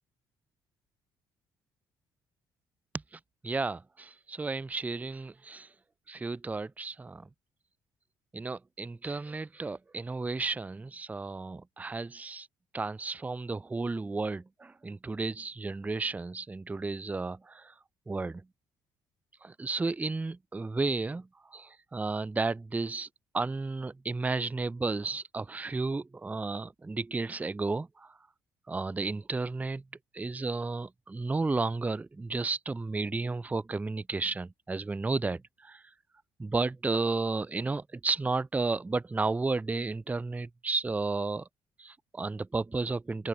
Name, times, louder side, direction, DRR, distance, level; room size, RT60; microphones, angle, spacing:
voice 1, 3.4-5.7 6.1-7.3 8.3-12.5 12.7-17.7 18.1-18.4 19.4-23.1 23.3-28.1 28.7-29.8 30.1-35.8 36.4-41.4 41.8-43.3, right 3 dB, 15° right, 0.4 m, -33 dB
open air
supercardioid pair, 60°, 10 cm